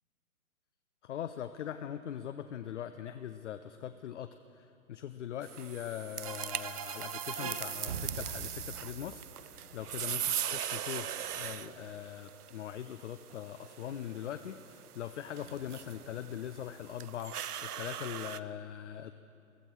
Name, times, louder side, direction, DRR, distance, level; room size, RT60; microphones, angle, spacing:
voice 1, 1.0-19.1, left 10 dB, 55° left, 9 dB, 0.6 m, -41 dB
sound 1, 5.4-18.4, right 9 dB, 85° right, 0.6 m, -40 dB
sound 2, 6.2-9.9, right 6 dB, 25° right, 0.5 m, -41 dB
sound 3, 7.3-8.9 9.2-10.4 10.9-12.3 12.6-12.7 13.3-14.5 14.8-16.7, right 5 dB, 50° right, 1.6 m, -59 dB
22.5 x 13.5 x 4.6 m, 2.6 s
figure-of-eight pair, 135°, 44 cm